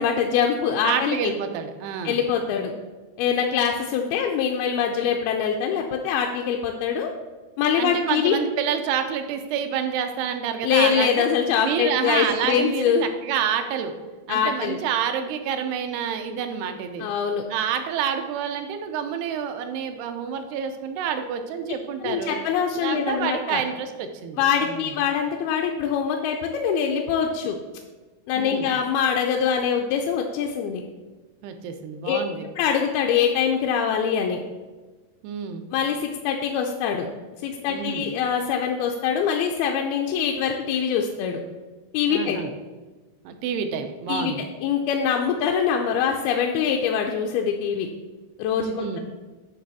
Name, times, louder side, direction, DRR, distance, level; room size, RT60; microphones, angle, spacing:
voice 1, 0.0-1.3 2.0-2.7 3.2-7.1 7.6-8.3 10.6-13.1 14.3-14.8 17.0-17.5 22.0-23.6 24.4-27.6 28.3-30.8 32.1-32.2 32.6-34.4 35.7-37.1 37.4-41.4 41.9-42.4 44.1-44.3 44.6-47.9 48.4-49.0, left 7 dB, 85° left, 1 dB, 2.4 m, -23 dB
voice 2, 0.8-2.2 7.8-11.3 11.6-13.9 14.3-17.1 17.5-22.4 22.8-24.4 24.6-24.9 28.4-28.7 31.4-32.5 35.2-35.6 37.7-38.1 42.1-42.5 43.3-44.4 48.6-49.0, right 8 dB, 85° right, 7 dB, 2.8 m, -28 dB
9.9 x 3.4 x 6.1 m, 1.3 s
omnidirectional pair, 4.5 m